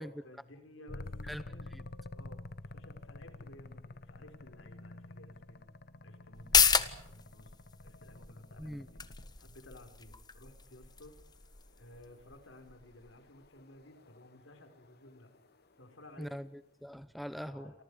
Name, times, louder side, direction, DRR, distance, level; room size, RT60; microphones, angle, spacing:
voice 1, 0.0-1.2 1.5-1.7 2.1-5.6 6.0-7.5 7.8-9.0 9.4-11.1 11.8-15.3 15.8-16.4 17.4-17.8, left 1 dB, 70° left, 7 dB, 5.2 m, -55 dB
sound 1, 0.9-9.4 11.7-16.2, left 2 dB, 55° left, 1.1 m, -49 dB
sound 2, 6.3-13.5 13.8-13.9, left 6 dB, 20° left, 1.4 m, -33 dB
voice 2, 16.2-17.7, equal, ahead, 13 dB, 0.8 m, -42 dB
29.5 x 24.5 x 5.0 m, 0.89 s
head